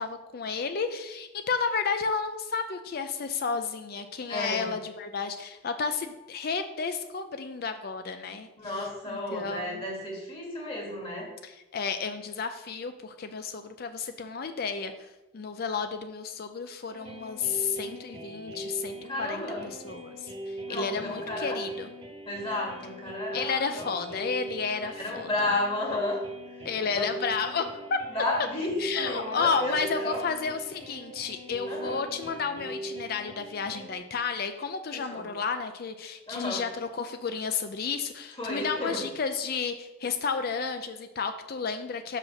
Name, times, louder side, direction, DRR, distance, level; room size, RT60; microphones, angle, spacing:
voice 1, 0.0-9.8 11.4-14.9 15.3-21.9 23.3-25.5 26.6-28.0 28.8-42.2, left 5 dB, 50° left, 8 dB, 0.4 m, -32 dB
voice 2, 4.3-4.7 8.6-11.3 19.1-19.7 20.7-21.6 22.3-23.9 24.8-26.2 26.5-26.7 27.0-27.1 28.1-28.7 29.0-30.2 31.7-32.0 34.9-35.3 36.3-36.6 38.4-39.0, left 2 dB, 30° left, -3 dB, 2.1 m, -32 dB
sound 1, 16.9-33.9, right 1 dB, 30° right, 1.4 m, -41 dB
5.7 x 5.0 x 6.3 m, 1.0 s
head